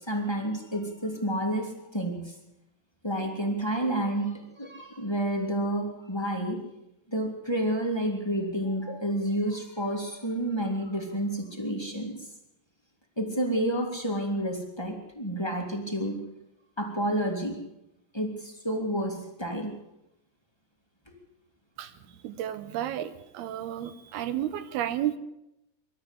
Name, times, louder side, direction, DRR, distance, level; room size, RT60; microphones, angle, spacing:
voice 1, 0.1-2.3 3.0-6.6 7.1-12.3 13.2-16.2 16.8-17.6 18.1-19.7, right 1 dB, 5° left, 1 dB, 2.2 m, -30 dB
voice 2, 22.2-25.2, right 11 dB, 70° right, 12 dB, 2.7 m, -32 dB
24.5 x 13.0 x 8.4 m, 0.87 s
omnidirectional pair, 5.1 m